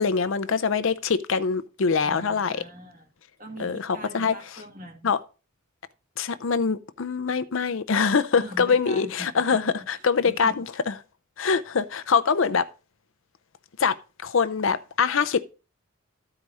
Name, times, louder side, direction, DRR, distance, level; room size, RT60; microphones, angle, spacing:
voice 1, 0.0-2.6 3.6-4.3 5.0-5.2 6.2-10.6 11.4-12.7 13.8-14.0 14.2-15.4, left 5 dB, 65° left, 0.6 m, -24 dB
voice 2, 2.0-3.1 3.4-5.1 8.4-9.6 10.0-10.6, equal, 35° right, 2.1 m, -42 dB
14.0 x 4.8 x 4.1 m
head